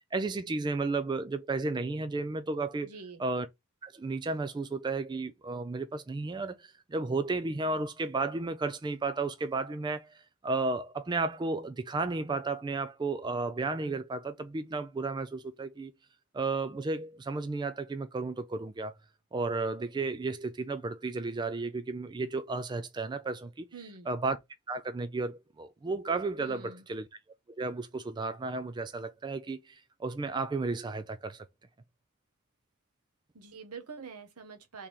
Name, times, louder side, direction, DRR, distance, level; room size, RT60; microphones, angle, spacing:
voice 1, 0.1-2.9 3.2-3.5 3.8-15.9 16.3-18.9 19.3-23.6 24.1-24.4 24.7-27.1 27.6-31.5, right 3 dB, 20° right, 0.3 m, -33 dB
voice 2, 2.8-3.2 23.7-24.2 26.4-26.9 33.3-34.9, right 5 dB, 80° right, 1.1 m, -46 dB
3.7 x 3.3 x 4.2 m
head